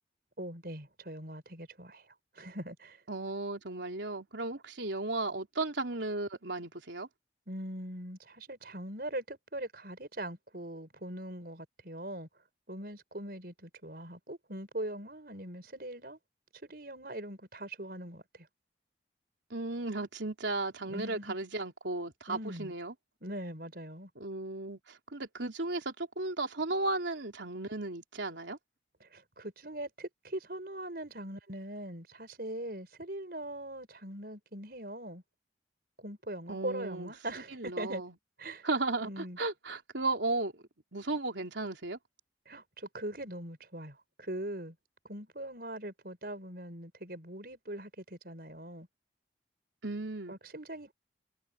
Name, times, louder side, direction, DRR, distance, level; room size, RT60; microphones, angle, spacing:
voice 1, 0.4-2.1 2.4-3.0 7.5-12.3 12.7-16.2 16.7-18.2 20.8-21.3 22.3-22.7 23.2-24.1 29.0-35.2 36.0-38.0 38.4-38.7 39.0-39.4 42.5-44.8 45.1-48.9 50.3-50.9, right 1 dB, 55° right, 6.0 m, -41 dB
voice 2, 3.1-7.1 19.5-22.9 24.2-28.6 36.5-37.1 37.5-38.1 38.6-40.6 40.9-42.0 49.8-50.4, right 2 dB, 85° right, 3.6 m, -35 dB
head